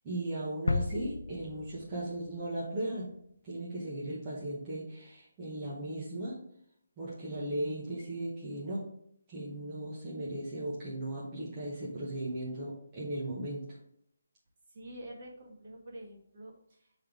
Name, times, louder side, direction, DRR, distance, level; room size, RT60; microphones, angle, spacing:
voice 1, 0.0-3.1 3.4-6.4 7.0-8.9 9.3-13.8, right 1 dB, 15° right, -8 dB, 0.9 m, -37 dB
sound 1, 0.7-2.6 3.0-3.1, left 3 dB, 85° left, 0.3 m, -35 dB
voice 2, 14.7-16.9, right 1 dB, 35° right, -1 dB, 1.3 m, -47 dB
7.5 x 3.5 x 3.6 m, 0.71 s
hypercardioid pair, 175°, 0 cm